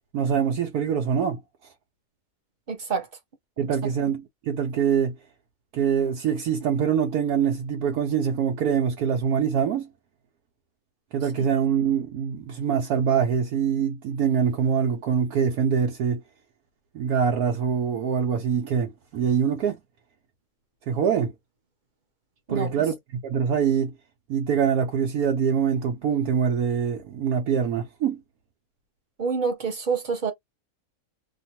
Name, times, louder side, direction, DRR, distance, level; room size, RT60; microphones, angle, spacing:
voice 1, 0.1-1.4 3.6-5.1 5.7-9.9 11.1-16.2 16.9-19.8 20.9-21.3 22.5-23.9 24.3-28.2, right 7 dB, 90° right, 1.2 m, -24 dB
voice 2, 2.7-3.1 11.4-11.5 22.5-22.7 29.2-30.3, right 5 dB, 45° right, 0.7 m, -27 dB
2.9 x 2.2 x 2.7 m
omnidirectional pair, 1.6 m